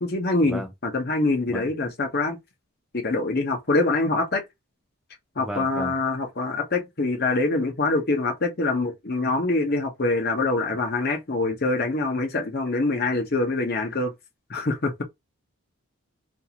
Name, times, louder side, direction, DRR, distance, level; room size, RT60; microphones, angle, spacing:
voice 1, 0.0-2.4 2.9-4.4 5.4-14.1 14.5-15.0, left 2 dB, 45° left, 0.8 m, -24 dB
voice 2, 5.4-6.0, equal, ahead, 0.5 m, -33 dB
2.6 x 2.4 x 2.8 m
head